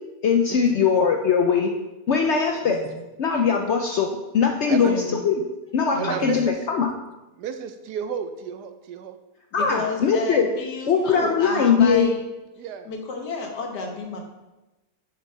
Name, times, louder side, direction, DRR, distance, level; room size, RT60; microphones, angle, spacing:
voice 1, 0.2-1.7 2.1-2.8 3.2-5.4 5.7-6.9 9.5-10.5 10.9-12.1, left 6 dB, 70° left, 2 dB, 0.6 m, -21 dB
voice 2, 2.6-3.0 4.8-5.2 5.9-6.5 9.6-12.2 12.9-14.2, left 3 dB, 85° left, 2 dB, 1.7 m, -32 dB
voice 3, 6.0-6.6 7.4-9.2 12.6-12.9, right 8 dB, 80° right, 9 dB, 1.2 m, -32 dB
6.7 x 4.6 x 4.6 m, 1.1 s
omnidirectional pair, 1.7 m